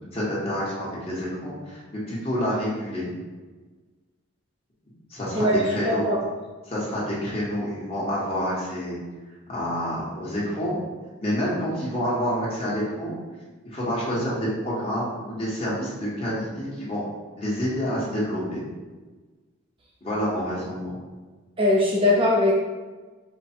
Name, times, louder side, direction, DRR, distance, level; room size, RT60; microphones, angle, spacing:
voice 1, 0.1-3.1 5.1-6.0 6.6-9.0 9.5-10.8 11.2-13.1 13.7-17.0 17.4-18.6 20.0-20.9, equal, 30° left, -7 dB, 1.4 m, -28 dB
voice 2, 5.3-6.2 21.6-22.5, left 1 dB, 25° right, -3 dB, 0.6 m, -20 dB
5.1 x 2.3 x 4.4 m, 1.3 s
head